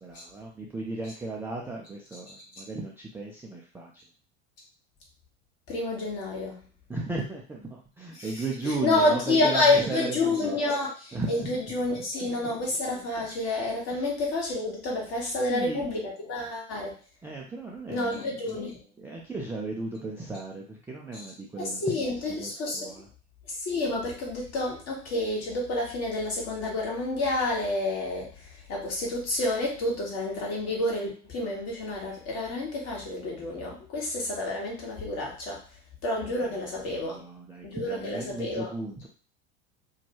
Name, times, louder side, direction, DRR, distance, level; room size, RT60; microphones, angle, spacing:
voice 1, 0.0-3.9 6.9-10.6 11.1-11.5 11.8-11.9 12.2-12.3 13.9-14.0 15.5-15.8 17.2-18.2 18.5-18.6 19.0-21.9 22.4-23.1 36.2-36.5 36.9-39.1, right 3 dB, 5° right, -3 dB, 0.3 m, -36 dB
voice 2, 2.3-2.6 5.7-6.6 8.1-8.3 8.6-17.0 17.9-18.8 21.6-23.0 23.5-35.6 36.0-37.2 37.6-38.7, left 2 dB, 45° left, -2 dB, 1.3 m, -29 dB
2.6 x 2.2 x 2.8 m, 0.37 s
figure-of-eight pair, 75°, 36 cm